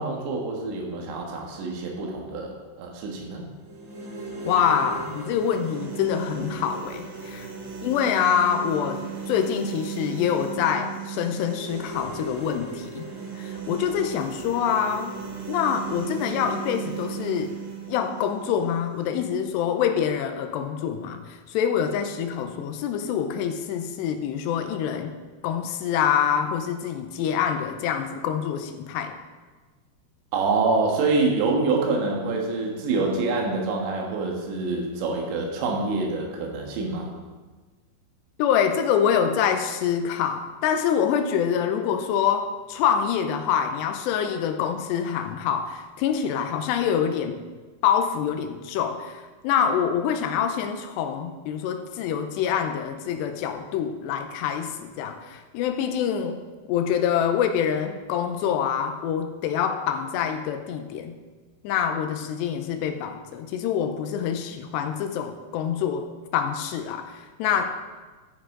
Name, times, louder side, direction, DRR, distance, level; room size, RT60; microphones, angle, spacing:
voice 1, 0.0-3.5 30.3-37.1, right 3 dB, 85° right, 0 dB, 3.9 m, -26 dB
sound 1, 3.6-19.6, right 6 dB, 35° right, 1.9 m, -36 dB
voice 2, 4.4-7.5 7.8-13.1 13.4-15.2 15.5-17.6 17.9-25.2 25.4-29.1 38.4-47.4 47.8-56.4 56.7-61.2 61.6-66.1 66.3-67.9, left 8 dB, 90° left, 7 dB, 2.9 m, -26 dB
12.5 x 9.7 x 3.8 m, 1.3 s
omnidirectional pair, 5.0 m